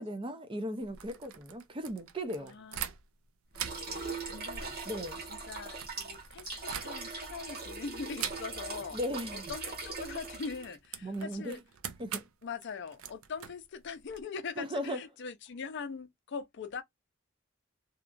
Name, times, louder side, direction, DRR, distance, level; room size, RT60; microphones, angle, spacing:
voice 1, 0.0-2.5 4.9-5.2 8.9-9.5 11.0-11.6 12.0-12.2 14.6-15.0, equal, 25° right, 0.4 m, -37 dB
sound 1, 0.8-3.2 3.5-7.3 8.1-8.8 9.1-9.3 9.6-14.2, right 9 dB, 80° right, 0.4 m, -44 dB
voice 2, 2.4-2.8 3.5-4.8 5.3-9.0 9.3-11.6 12.1-16.8, left 5 dB, 55° left, 0.5 m, -42 dB
sound 2, 3.6-10.8, right 3 dB, 50° right, 1.2 m, -41 dB
2.8 x 2.3 x 2.4 m
head